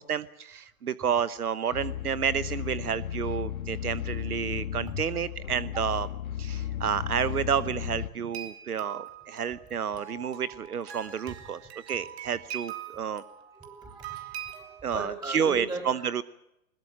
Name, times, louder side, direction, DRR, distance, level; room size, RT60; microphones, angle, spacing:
voice 1, 0.0-6.1 6.4-11.6 11.9-13.2 14.8-16.2, right 7 dB, 80° right, 17 dB, 1.1 m, -30 dB
sound 1, 1.7-8.1, left 10 dB, 70° left, 1.6 m, -34 dB
sound 2, 8.3-14.8, right 10 dB, 45° right, 3.2 m, -42 dB
voice 2, 13.5-16.0, right 2 dB, 10° right, 4 dB, 6.4 m, -39 dB
21.5 x 21.5 x 7.4 m, 0.82 s
hypercardioid pair, 125°, 44 cm